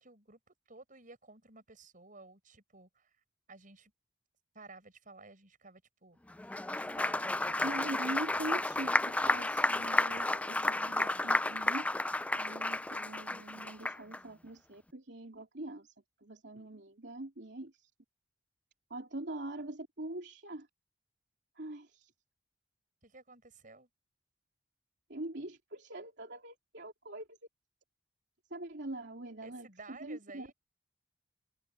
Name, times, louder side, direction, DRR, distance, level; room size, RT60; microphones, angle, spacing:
voice 1, 0.0-3.2 3.5-3.9 4.5-6.2 6.7-7.9 23.0-23.9 29.4-30.5, right 3 dB, 45° right, 7.0 m, -54 dB
Applause, 6.4-14.2, left 2 dB, 10° left, 0.3 m, -32 dB
voice 2, 7.6-11.9 12.3-15.9 16.2-17.9 18.9-20.7 21.5-22.1 25.1-27.4 28.5-30.5, right 1 dB, 65° right, 3.4 m, -43 dB
head